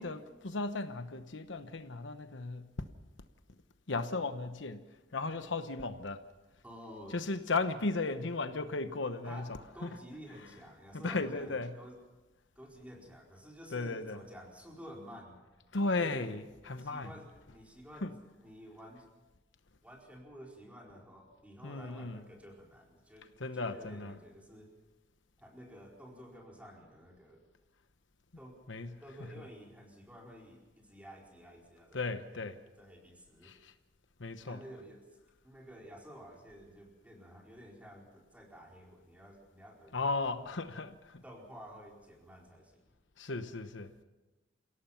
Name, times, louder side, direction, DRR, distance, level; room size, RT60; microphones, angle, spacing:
voice 1, 0.0-2.7 3.9-4.8 5.1-6.2 7.1-9.5 9.8-9.9 10.9-11.7 13.7-14.2 15.7-17.1 18.0-18.1 21.6-22.2 23.4-24.2 28.7-29.3 31.9-32.6 33.4-33.7 34.2-34.6 39.9-41.2 43.2-43.9, left 3 dB, 75° left, 1.0 m, -35 dB
voice 2, 6.6-7.2 9.2-12.0 12.6-15.4 16.0-16.4 16.8-19.1 19.8-24.7 25.4-27.4 28.4-28.6 29.0-33.5 34.4-35.1 35.4-40.4 41.2-42.8, equal, 10° right, 4.5 m, -52 dB
28.0 x 17.5 x 5.9 m
head